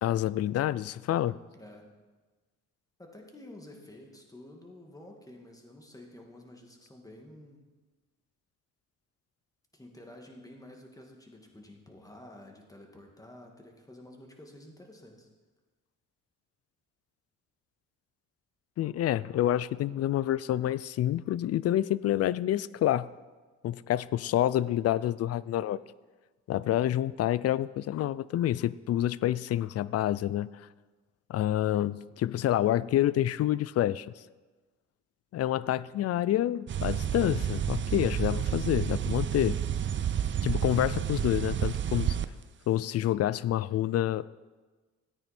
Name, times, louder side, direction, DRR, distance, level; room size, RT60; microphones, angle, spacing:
voice 1, 0.0-1.4 18.8-23.1 23.6-25.8 26.5-30.5 31.3-34.1 35.3-39.6 40.4-42.2 42.7-44.3, left 12 dB, 55° left, 19 dB, 0.4 m, -28 dB
voice 2, 1.5-1.9 3.0-7.6 9.7-15.3, left 1 dB, 10° left, 2 dB, 2.1 m, -50 dB
sound 1, 36.7-42.3, right 9 dB, 40° right, 0.5 m, -30 dB
14.0 x 8.9 x 4.4 m, 1.3 s
cardioid pair, 90°, 30 cm